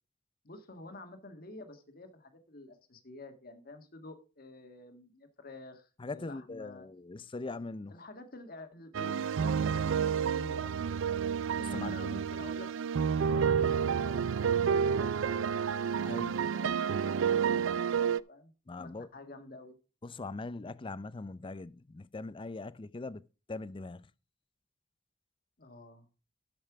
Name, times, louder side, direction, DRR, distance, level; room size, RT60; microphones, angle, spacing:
voice 1, 0.4-6.9 7.9-10.7 11.0-11.3 11.6-12.7 13.2-15.7 16.3-17.6 17.9-19.8 25.6-26.1, left 2 dB, 50° left, 1.7 m, -49 dB
voice 2, 6.0-7.9 11.6-12.2 13.4-13.5 16.0-16.4 18.7-19.1 20.0-23.2 23.5-24.1, left 3 dB, 25° left, 0.4 m, -41 dB
sound 1, 8.9-18.2, right 7 dB, 70° right, 0.4 m, -30 dB
12.0 x 5.5 x 4.8 m
head